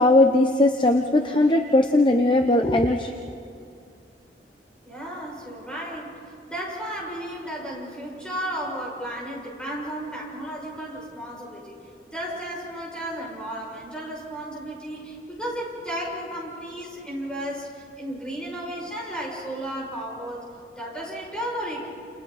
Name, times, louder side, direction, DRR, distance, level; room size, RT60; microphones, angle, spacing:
voice 1, 0.0-3.1, left 2 dB, 30° left, 5 dB, 0.8 m, -19 dB
voice 2, 4.8-6.2 6.5-11.8 12.1-20.4 20.8-21.9, equal, 5° left, -4 dB, 6.4 m, -33 dB
30.0 x 29.0 x 4.1 m, 2.4 s
head